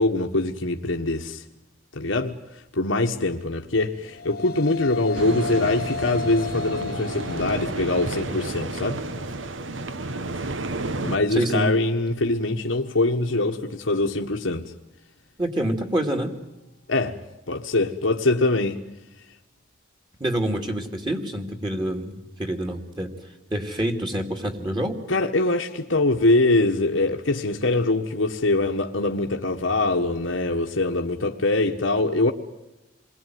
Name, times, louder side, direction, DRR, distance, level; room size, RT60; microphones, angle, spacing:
voice 1, 0.0-1.4 1.9-9.0 11.0-14.7 16.9-18.8 25.1-32.3, left 2 dB, 85° left, 1.5 m, -23 dB
sound 1, 3.8-13.0, left 4 dB, 50° left, 1.2 m, -37 dB
sound 2, 5.1-11.2, right 2 dB, 80° right, 1.3 m, -31 dB
voice 2, 11.3-11.8 15.4-16.3 20.2-25.0, right 1 dB, 25° right, 2.6 m, -27 dB
28.0 x 22.0 x 9.4 m
head